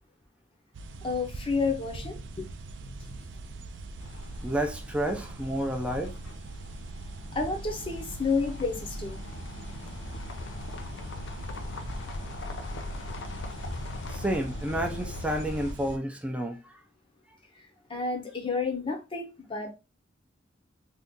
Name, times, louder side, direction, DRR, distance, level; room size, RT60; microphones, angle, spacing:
sound 1, 0.7-16.0, right 3 dB, 80° right, 0.4 m, -42 dB
voice 1, 1.0-2.5 2.9-3.2 7.3-9.2 17.9-19.7, left 4 dB, 30° left, 0.8 m, -30 dB
sound 2, 4.0-15.7, left 2 dB, 85° left, 0.5 m, -40 dB
voice 2, 4.4-6.1 14.1-16.6, right 1 dB, 5° right, 0.5 m, -30 dB
2.8 x 2.4 x 3.6 m
head